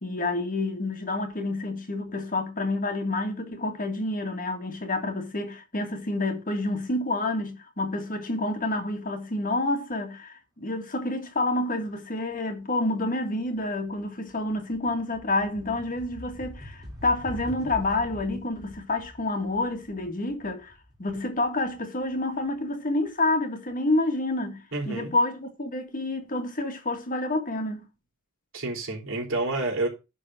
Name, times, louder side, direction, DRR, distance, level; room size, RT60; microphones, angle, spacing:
voice 1, 0.0-27.8, left 2 dB, 40° left, 1.6 m, -28 dB
sound 1, 13.2-13.3 13.6-22.4, equal, 20° right, 2.7 m, -44 dB
voice 2, 24.7-25.1 28.5-29.9, right 2 dB, 60° right, 3.8 m, -29 dB
11.0 x 3.9 x 6.2 m
head